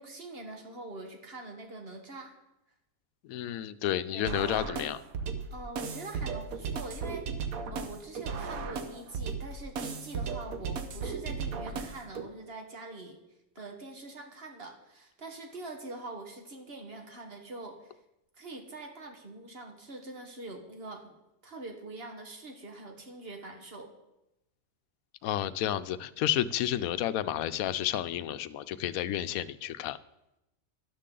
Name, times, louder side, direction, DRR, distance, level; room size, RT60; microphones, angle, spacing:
voice 1, 0.0-2.3 4.1-4.4 5.5-7.4 7.7-13.2 13.5-17.9 18.3-21.1 21.4-23.9, right 2 dB, 45° right, 4 dB, 1.6 m, -44 dB
voice 2, 3.2-5.0 25.2-30.0, left 11 dB, 90° left, 14 dB, 1.0 m, -31 dB
sound 1, 4.3-12.2, right 5 dB, 85° right, 1.3 m, -36 dB
13.0 x 11.0 x 3.8 m, 0.91 s
omnidirectional pair, 1.4 m